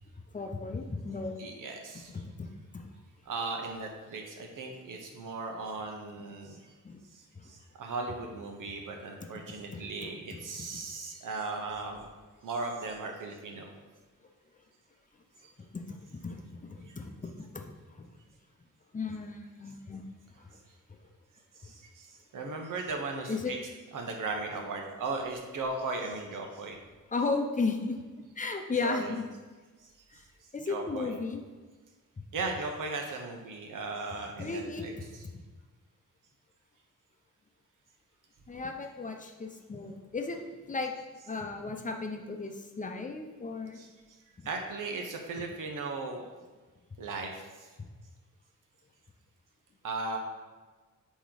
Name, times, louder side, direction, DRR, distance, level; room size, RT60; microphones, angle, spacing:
voice 1, 0.3-1.5 2.1-2.8 6.8-7.0 7.4-7.5 9.7-10.1 10.7-10.8 15.7-17.7 18.0-18.1 18.9-20.0 23.3-23.5 27.1-29.2 30.1-30.2 30.5-31.4 34.4-35.1 38.5-40.9 41.3-43.8, left 3 dB, 25° left, 4 dB, 0.7 m, -35 dB
voice 2, 1.4-2.1 3.3-6.6 7.1-12.1 12.4-13.7 21.6-23.6 23.9-26.8 28.8-29.1 30.7-31.1 32.3-34.9 43.7-43.9 44.4-46.2 47.0-47.7 49.8-50.2, right 3 dB, 80° right, 2 dB, 1.0 m, -37 dB
8.3 x 3.1 x 4.0 m, 1.3 s
cardioid pair, 90°, 31 cm